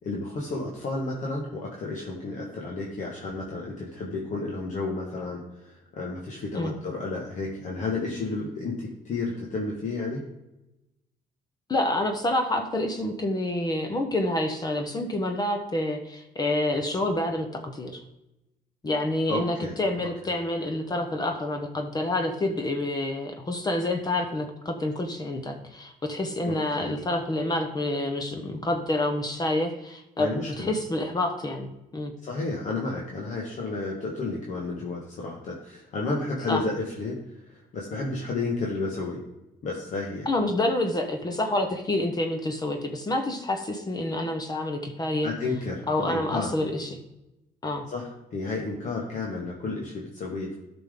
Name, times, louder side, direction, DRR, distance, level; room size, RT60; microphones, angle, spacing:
voice 1, 0.0-10.2 19.3-19.8 26.5-26.9 30.2-30.7 32.2-39.2 39.6-40.3 45.2-46.5 47.9-50.6, left 3 dB, 55° left, -2 dB, 1.8 m, -32 dB
voice 2, 11.7-18.0 18.8-30.3 30.6-32.1 36.5-36.6 40.3-45.3 45.9-47.0 47.6-47.9, left 1 dB, 25° left, 4 dB, 1.1 m, -28 dB
13.0 x 6.0 x 3.8 m, 0.94 s
cardioid pair, 120°, 15 cm